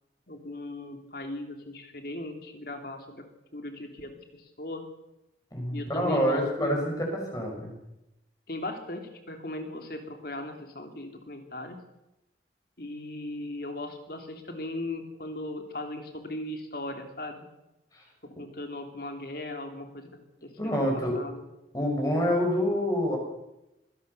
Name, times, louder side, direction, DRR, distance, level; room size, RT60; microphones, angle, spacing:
voice 1, 0.3-3.3 3.5-4.8 5.7-6.8 8.5-11.8 12.8-17.5 18.4-20.9 21.1-21.5, left 1 dB, 55° left, 5 dB, 3.3 m, -38 dB
voice 2, 5.5-7.7 17.9-18.0 20.6-21.2 21.7-23.2, equal, 20° left, 1 dB, 6.3 m, -27 dB
25.0 x 17.0 x 6.8 m, 0.92 s
head